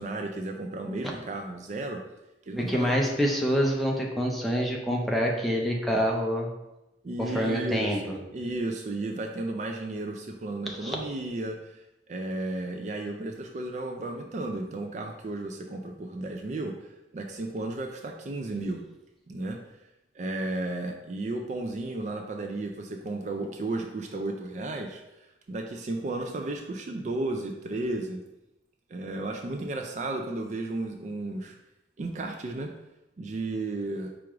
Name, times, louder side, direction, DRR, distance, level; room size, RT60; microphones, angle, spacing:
voice 1, 0.0-2.0 2.5-3.1 7.0-11.8 12.1-18.9 19.3-19.6 20.1-28.2 28.9-31.6 32.0-32.7 33.2-34.1, right 2 dB, 40° right, 3 dB, 0.4 m, -33 dB
voice 2, 2.6-6.5 7.2-8.0 10.7-11.0, equal, ahead, -2 dB, 0.6 m, -26 dB
4.5 x 2.5 x 4.7 m, 0.94 s
head